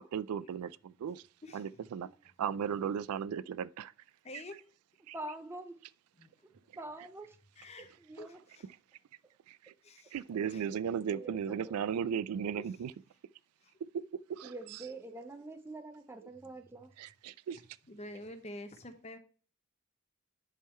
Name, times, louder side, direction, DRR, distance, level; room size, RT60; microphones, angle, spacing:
voice 1, 0.1-1.2 1.5-2.1 2.4-3.9 5.1-5.2 9.5-9.7 10.1-12.9 14.3-14.5 17.0-17.6, right 8 dB, 85° right, 0.3 m, -36 dB
voice 2, 4.2-4.5 6.2-6.3 7.6-7.9 8.2-8.7 9.8-10.2 10.4-10.6 13.6-13.7 16.4-16.5 17.9-19.2, left 1 dB, 30° left, 0.8 m, -47 dB
voice 3, 5.1-5.8 6.8-7.4 8.0-8.4 11.1-11.7 14.4-16.9, right 2 dB, 10° right, 0.4 m, -45 dB
10.5 x 3.7 x 4.3 m
head